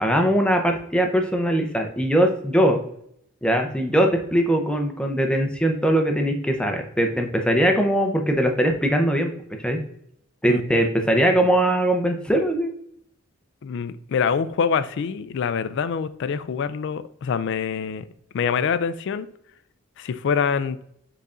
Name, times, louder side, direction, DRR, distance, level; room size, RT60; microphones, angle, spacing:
voice 1, 0.0-2.8 3.4-9.3 9.6-9.8 10.4-12.7, right 1 dB, 5° left, 3 dB, 0.5 m, -21 dB
voice 2, 10.5-10.9 13.6-18.0 18.3-19.3 20.0-20.8, left 6 dB, 55° left, 13 dB, 0.3 m, -25 dB
5.3 x 4.0 x 2.5 m, 0.71 s
head